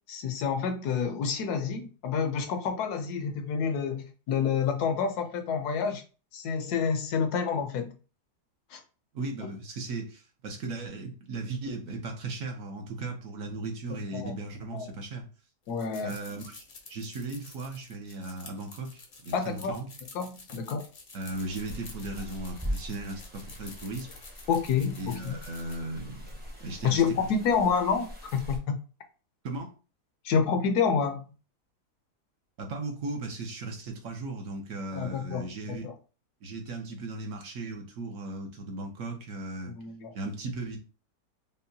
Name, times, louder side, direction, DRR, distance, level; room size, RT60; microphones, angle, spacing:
voice 1, 0.1-6.0 6.3-7.9 8.7-8.8 9.4-9.5 14.1-14.3 14.7-14.9 15.7-16.1 19.3-19.8 20.1-20.8 24.5-25.4 26.8-28.8 30.2-31.3 34.9-35.9 39.8-40.1, left 6 dB, 75° left, 6 dB, 1.2 m, -28 dB
voice 2, 9.1-15.2 16.0-18.9 19.2-19.9 21.1-24.1 25.0-26.3 26.6-27.0 29.4-29.7 32.6-35.9 36.4-39.7 40.1-40.8, right 2 dB, 65° right, 3 dB, 1.1 m, -37 dB
sound 1, 15.6-25.8, left 3 dB, 45° left, 0.6 m, -50 dB
sound 2, 21.3-28.6, equal, 10° right, 0.5 m, -41 dB
5.4 x 2.2 x 2.7 m, 0.35 s
omnidirectional pair, 1.7 m